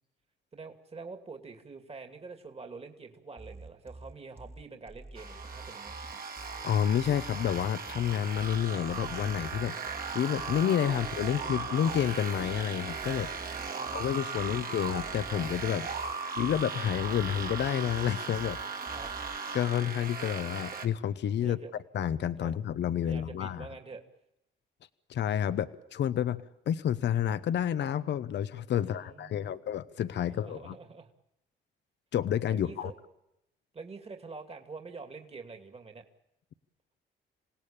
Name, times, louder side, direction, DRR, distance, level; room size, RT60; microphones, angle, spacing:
voice 1, 0.5-5.9 10.9-11.0 13.5-14.7 18.9-19.1 21.4-21.7 22.4-22.5 23.0-24.0 28.8-29.6 30.2-31.1 32.5-32.9 33.7-36.0, right 4 dB, 30° right, 5 dB, 2.6 m, -46 dB
sound 1, 3.4-19.4, right 2 dB, 10° right, 1.7 m, -48 dB
sound 2, 5.2-20.9, right 5 dB, 45° right, 2.5 m, -37 dB
voice 2, 6.6-9.8 10.1-13.3 13.9-15.9 16.4-18.6 19.5-21.6 21.9-23.7 25.1-30.7 32.1-32.9, left 10 dB, 60° left, 13 dB, 0.9 m, -29 dB
27.0 x 17.5 x 8.8 m, 0.87 s
cardioid pair, 90°, 20 cm